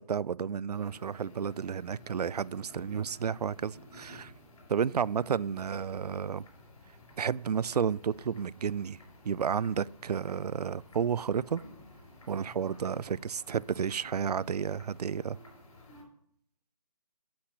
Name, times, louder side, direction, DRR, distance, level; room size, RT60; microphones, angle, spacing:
voice 1, 0.1-4.3 4.7-6.4 7.2-9.0 9.2-11.6 12.3-15.4, right 7 dB, 70° right, 0.4 m, -31 dB
sound 1, 0.7-16.0, left 1 dB, 55° left, 5.5 m, -54 dB
8.7 x 8.4 x 5.7 m
figure-of-eight pair, 155°, 21 cm